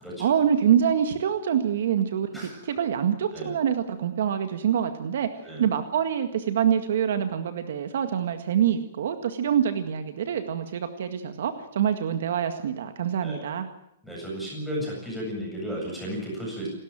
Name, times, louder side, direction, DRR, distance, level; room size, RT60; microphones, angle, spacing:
voice 1, 0.2-13.7, right 9 dB, 60° right, 8 dB, 1.9 m, -25 dB
voice 2, 14.0-16.7, equal, ahead, -4 dB, 7.9 m, -34 dB
28.5 x 13.0 x 9.0 m, 0.78 s
hypercardioid pair, 175°, 0 cm